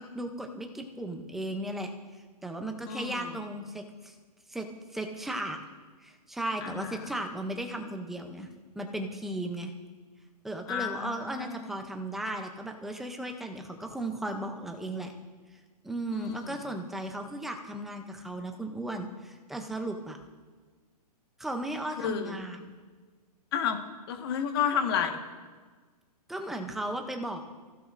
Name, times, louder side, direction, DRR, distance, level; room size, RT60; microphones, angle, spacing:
voice 1, 0.0-1.9 2.4-4.1 4.5-5.6 6.0-8.5 8.8-9.7 10.4-15.1 15.8-20.2 21.4-22.7 26.3-27.4, right 1 dB, ahead, 4 dB, 0.5 m, -36 dB
voice 2, 2.9-3.4 6.6-7.1 10.7-11.6 16.1-16.7 22.0-22.4 23.5-23.8 24.1-25.2, left 8 dB, 35° left, 5 dB, 1.4 m, -31 dB
26.0 x 15.0 x 2.5 m, 1.4 s
hypercardioid pair, 170°, 21 cm